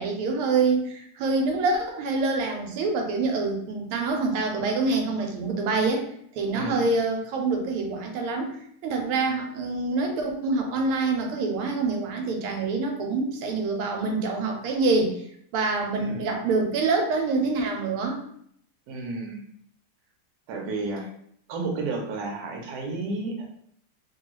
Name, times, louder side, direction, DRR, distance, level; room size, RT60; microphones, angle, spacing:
voice 1, 0.0-6.0 6.3-15.1 15.5-18.2, right 3 dB, 90° right, 2 dB, 1.5 m, -26 dB
voice 2, 6.5-6.9 16.0-16.3 18.9-19.4 20.5-21.0 21.5-23.4, right 3 dB, 65° right, 0 dB, 1.0 m, -32 dB
3.4 x 2.3 x 3.0 m, 0.68 s
omnidirectional pair, 2.4 m